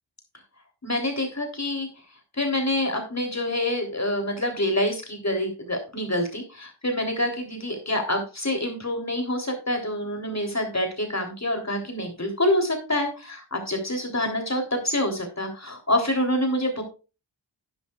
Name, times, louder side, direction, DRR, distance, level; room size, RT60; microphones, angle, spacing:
voice 1, 0.8-1.9 2.4-16.8, left 1 dB, 35° left, 3 dB, 3.4 m, -26 dB
11.5 x 10.5 x 2.4 m, 0.32 s
wide cardioid pair, 65°, 45 cm